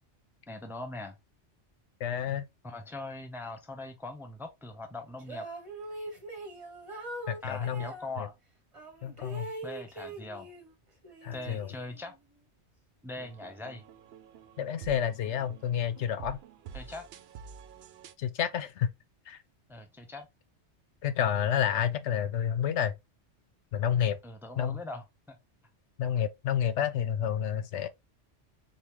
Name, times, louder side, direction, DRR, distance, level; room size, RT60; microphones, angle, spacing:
voice 1, 0.5-1.2 2.6-5.5 7.4-8.3 9.6-10.5 11.3-12.1 13.0-13.8 16.7-17.1 19.7-20.3 24.2-25.4, left 2 dB, 5° right, 0.6 m, -41 dB
voice 2, 2.0-2.4 7.3-7.9 8.2-8.3 9.0-9.5 11.2-11.7 14.6-16.4 18.2-18.9 19.3-19.4 21.0-22.9 23.7-24.2 24.6-24.8 26.0-27.9, left 9 dB, 80° left, 0.9 m, -29 dB
sound 1, 5.2-8.1 8.7-10.7 11.0-12.1, right 2 dB, 30° right, 1.2 m, -42 dB
sound 2, 13.2-18.1, right 8 dB, 70° right, 0.8 m, -48 dB
4.2 x 3.5 x 3.0 m
omnidirectional pair, 1.2 m